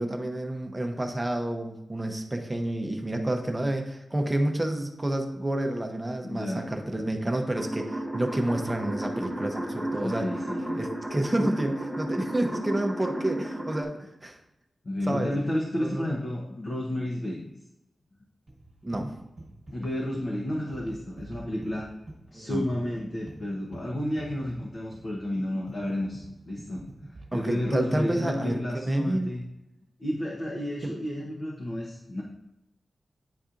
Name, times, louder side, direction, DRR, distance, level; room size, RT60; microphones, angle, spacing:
voice 1, 0.0-10.3 10.7-14.4 15.1-15.3 15.8-16.0 18.8-19.1 22.3-22.7 27.3-29.3 30.8-30.9, right 1 dB, 15° right, 4 dB, 0.8 m, -29 dB
voice 2, 6.2-7.1 10.0-10.8 14.8-17.4 19.7-21.9 22.3-26.8 27.3-29.5 30.0-32.2, left 1 dB, 45° left, -2 dB, 0.9 m, -31 dB
sound 1, 7.6-13.8, right 1 dB, 15° left, 1.6 m, -33 dB
sound 2, 18.5-28.0, right 2 dB, 40° right, 1.4 m, -47 dB
9.3 x 4.3 x 2.5 m, 0.87 s
wide cardioid pair, 130°, 0 cm